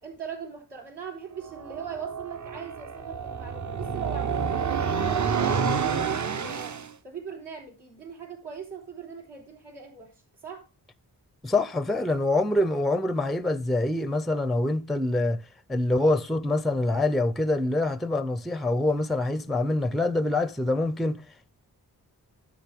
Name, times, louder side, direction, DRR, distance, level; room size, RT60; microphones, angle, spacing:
voice 1, 0.0-6.8 7.0-10.1 10.4-10.6, right 6 dB, 80° right, 3.5 m, -40 dB
sound 1, 1.4-6.9, right 6 dB, 45° right, 0.7 m, -28 dB
voice 2, 11.4-15.4 15.7-21.2, left 2 dB, ahead, 0.4 m, -25 dB
10.5 x 6.7 x 3.4 m
wide cardioid pair, 80°, 40 cm